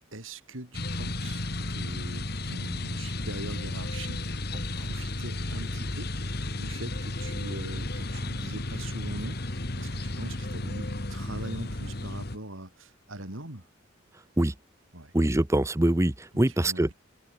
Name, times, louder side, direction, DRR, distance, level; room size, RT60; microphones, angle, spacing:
voice 1, 0.1-13.6 14.9-15.1 16.3-16.9, right 1 dB, 85° right, 5.5 m, -42 dB
sound 1, 0.7-12.4, left 2 dB, 55° left, 2.1 m, -33 dB
voice 2, 15.1-16.9, right 1 dB, 15° right, 0.7 m, -24 dB
head